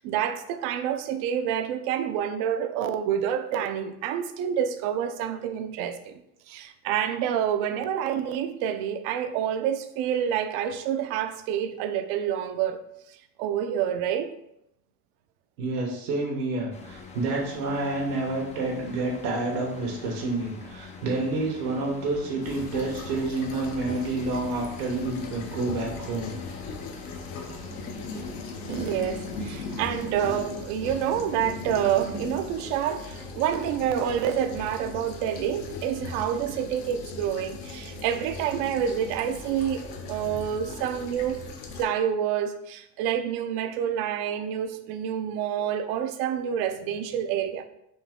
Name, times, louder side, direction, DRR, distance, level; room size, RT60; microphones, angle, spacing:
voice 1, 0.0-6.2 6.5-12.8 13.4-14.3 28.7-41.4 41.8-47.7, right 9 dB, 55° right, 0.6 m, -28 dB
voice 2, 15.6-26.3 27.5-27.6, right 2 dB, 75° right, 1.2 m, -29 dB
sound 1, 16.7-32.9, left 4 dB, 15° left, 0.3 m, -45 dB
sound 2, 22.4-41.8, left 3 dB, 65° left, 0.8 m, -38 dB
3.9 x 2.7 x 3.6 m
supercardioid pair, 100°, 44 cm